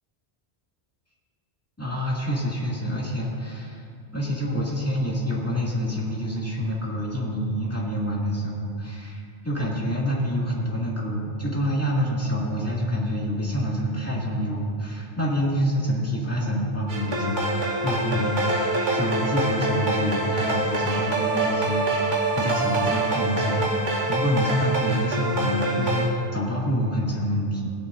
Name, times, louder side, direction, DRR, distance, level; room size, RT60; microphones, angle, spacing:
voice 1, 1.8-3.8 4.1-9.2 9.4-23.7 24.1-27.7, equal, 15° left, -6 dB, 2.1 m, -27 dB
sound 1, 16.9-26.1, right 2 dB, 45° right, 1.4 m, -25 dB
17.5 x 10.5 x 2.6 m, 2.4 s
omnidirectional pair, 1.2 m